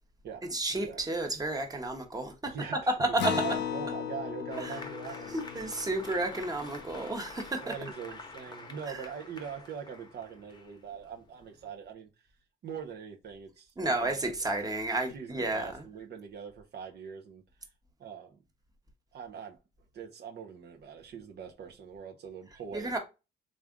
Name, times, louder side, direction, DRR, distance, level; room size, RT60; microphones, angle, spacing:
voice 1, 0.5-3.3 4.6-4.8 5.3-7.6 8.9-9.0 13.8-15.8 22.7-23.0, right 2 dB, 20° right, 1.0 m, -31 dB
voice 2, 2.5-5.7 7.6-12.1 12.6-14.2 15.1-17.4 18.0-18.4 19.1-19.6 19.9-23.0, right 7 dB, 55° right, 0.7 m, -42 dB
Acoustic guitar, 3.2-8.1, left 8 dB, 60° left, 0.6 m, -37 dB
Applause, 4.5-11.7, left 3 dB, 20° left, 0.8 m, -48 dB
3.5 x 2.5 x 3.5 m
cardioid pair, 90°, 20 cm